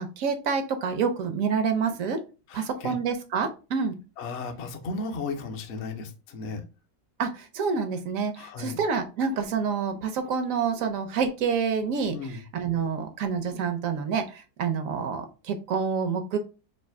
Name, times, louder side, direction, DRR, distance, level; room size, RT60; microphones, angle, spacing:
voice 1, 0.0-2.2 2.5-4.0 7.2-16.4, right 6 dB, 70° right, 7 dB, 0.8 m, -28 dB
voice 2, 2.5-2.9 4.2-6.6 8.4-8.8 12.1-12.4, left 3 dB, 60° left, 4 dB, 0.7 m, -35 dB
3.2 x 2.6 x 4.5 m, 0.32 s
omnidirectional pair, 1.9 m